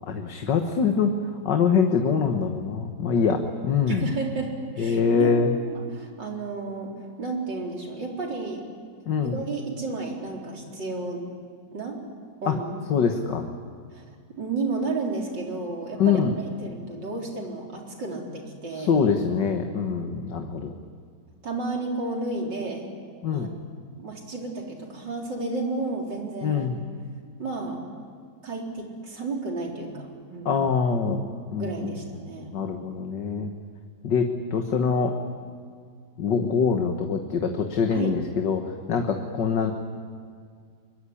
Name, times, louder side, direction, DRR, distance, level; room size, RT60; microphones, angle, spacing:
voice 1, 0.1-1.1 1.5-4.1 4.8-5.5 9.1-9.4 12.5-12.6 12.9-13.4 16.0-16.3 18.7-20.7 23.2-23.5 26.4-26.8 30.5-31.9 32.5-33.5 34.0-35.2 36.2-39.7, left 6 dB, 75° left, 4 dB, 2.0 m, -24 dB
voice 2, 3.9-5.4 5.7-6.9 7.2-8.6 9.2-11.2 11.7-12.0 12.4-12.7 13.9-14.0 14.4-16.2 16.6-18.9 21.4-22.8 23.3-23.5 24.0-26.7 27.4-27.8 28.4-30.5 31.6-32.5 37.9-38.2, right 3 dB, 85° right, 0 dB, 4.7 m, -32 dB
24.5 x 22.5 x 10.0 m, 2.1 s
omnidirectional pair, 1.9 m